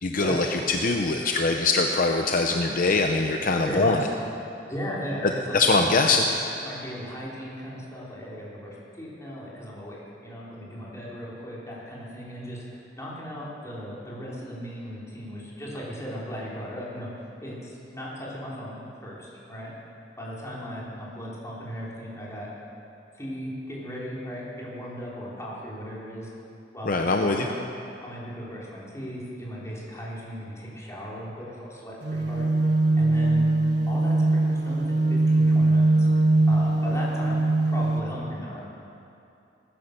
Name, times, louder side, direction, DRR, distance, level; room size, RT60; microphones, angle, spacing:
voice 1, 0.0-4.0 5.2-6.3 26.8-27.5, left 3 dB, 50° left, 3 dB, 0.7 m, -23 dB
voice 2, 3.6-4.1 4.7-5.9 6.6-17.1 17.4-19.7 20.2-22.5 23.1-26.3 26.7-27.6 28.0-32.5 33.0-33.5 33.9-36.1 36.5-38.6, equal, 15° left, -6 dB, 3.9 m, -37 dB
sound 1, 32.0-38.0, right 2 dB, 70° right, 1.4 m, -21 dB
19.5 x 10.5 x 6.6 m, 2.7 s
head